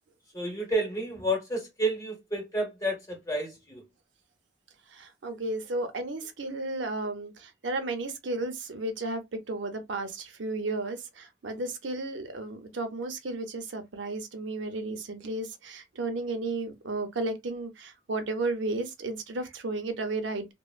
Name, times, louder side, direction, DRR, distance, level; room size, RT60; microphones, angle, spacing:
voice 1, 0.3-3.8, right 1 dB, 20° left, 1.0 m, -30 dB
voice 2, 4.9-20.4, right 2 dB, 85° right, 0.6 m, -33 dB
2.9 x 2.0 x 2.4 m
head